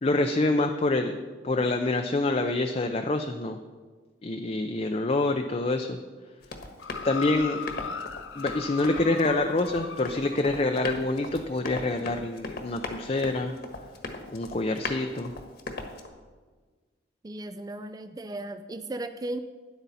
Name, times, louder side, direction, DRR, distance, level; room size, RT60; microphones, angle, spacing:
voice 1, 0.0-3.6 4.2-6.0 7.0-7.6 8.4-13.5 14.3-15.3, left 2 dB, 35° left, 4 dB, 0.5 m, -26 dB
Run, 6.4-16.1, left 2 dB, 55° left, 1.3 m, -39 dB
sound 1, 6.8-10.5 11.3-11.4, left 5 dB, 90° left, 0.6 m, -37 dB
voice 2, 17.2-19.4, right 1 dB, 20° right, 9 dB, 0.4 m, -36 dB
12.5 x 10.0 x 4.1 m, 1.4 s
head